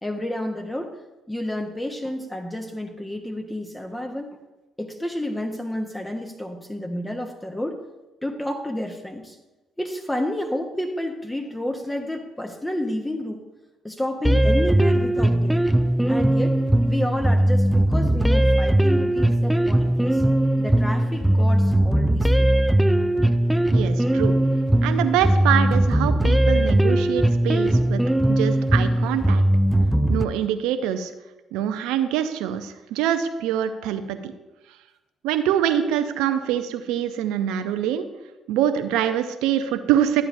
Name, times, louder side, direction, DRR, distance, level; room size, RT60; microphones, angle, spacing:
voice 1, 0.0-1.0 1.3-4.4 4.8-7.8 8.2-9.4 9.8-13.4 13.8-15.6 16.1-16.6 16.8-20.2 20.6-22.6, left 1 dB, 10° left, 3 dB, 1.0 m, -30 dB
sound 1, 14.2-30.2, right 1 dB, 5° right, 0.4 m, -19 dB
voice 2, 23.7-24.4 24.8-28.0 28.3-29.4 30.1-31.1 31.5-34.3 35.2-38.1 38.5-40.2, right 10 dB, 75° right, 9 dB, 0.5 m, -24 dB
12.0 x 8.8 x 2.6 m, 1.1 s
hypercardioid pair, 50°, 0 cm